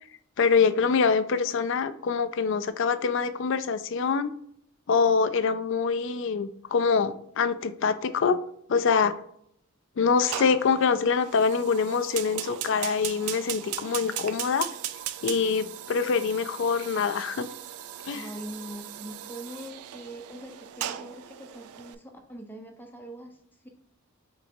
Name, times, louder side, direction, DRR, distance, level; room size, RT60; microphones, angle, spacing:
voice 1, 0.4-4.3 4.9-8.4 8.7-9.1 10.0-14.7 15.2-17.5 18.0-18.3, left 5 dB, 55° left, 12 dB, 0.4 m, -25 dB
Fire, 10.3-21.9, right 12 dB, 80° right, 0.3 m, -38 dB
voice 2, 18.1-23.4 23.6-23.7, right 1 dB, 10° left, 4 dB, 0.6 m, -42 dB
4.5 x 3.7 x 2.5 m, 0.68 s
head